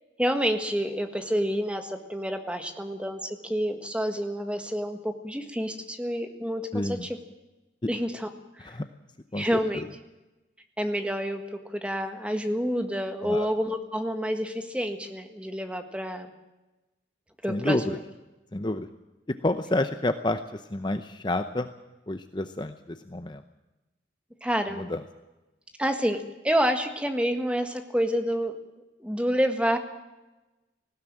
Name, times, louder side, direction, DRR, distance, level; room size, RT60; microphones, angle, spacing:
voice 1, 0.2-7.2 7.9-8.3 8.6-8.7 9.4-9.8 10.8-16.3 17.4-18.0 24.4-24.8 25.8-28.5 29.0-29.8, equal, 5° right, 6 dB, 1.6 m, -28 dB
voice 2, 6.7-7.1 8.6-8.9 9.3-9.9 13.2-13.5 17.5-18.0 18.5-18.9 19.4-21.7 22.1-23.4 24.8-25.0, left 1 dB, 25° left, 9 dB, 0.7 m, -29 dB
19.0 x 16.0 x 8.9 m, 1.1 s
head